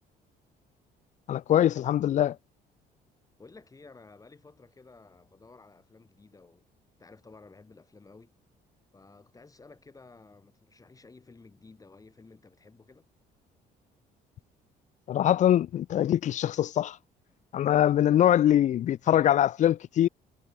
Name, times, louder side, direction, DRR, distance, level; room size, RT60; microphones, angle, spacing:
voice 1, 1.3-2.4 15.1-17.0 17.5-20.1, left 11 dB, 45° left, 0.4 m, -23 dB
voice 2, 3.4-6.6 7.0-8.3 8.9-13.1, left 3 dB, 20° left, 6.4 m, -53 dB
cardioid pair, 110°, 17 cm